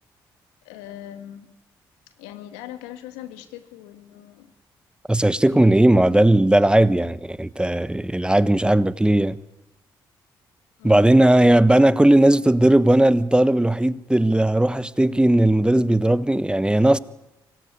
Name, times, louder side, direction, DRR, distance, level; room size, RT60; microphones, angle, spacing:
voice 1, 0.6-1.5 2.2-4.5 5.5-6.1 10.8-11.1, left 12 dB, 80° left, 2.1 m, -41 dB
voice 2, 5.1-9.4 10.8-17.0, right 1 dB, 10° right, 1.2 m, -17 dB
24.5 x 20.5 x 9.7 m
hypercardioid pair, 45°, 10 cm